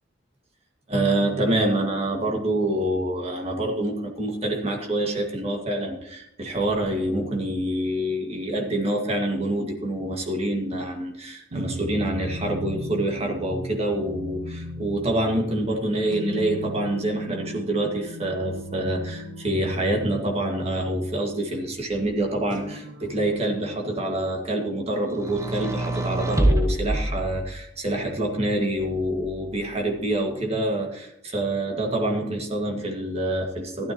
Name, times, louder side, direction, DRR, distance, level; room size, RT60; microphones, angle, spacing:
voice 1, 0.9-33.9, right 1 dB, 30° right, 2 dB, 1.9 m, -26 dB
sound 1, 11.5-24.0, equal, 70° right, 1.0 m, -38 dB
sound 2, 25.2-27.9 28.8-29.8, right 1 dB, 15° right, 0.8 m, -26 dB
14.0 x 12.5 x 3.0 m, 0.76 s
head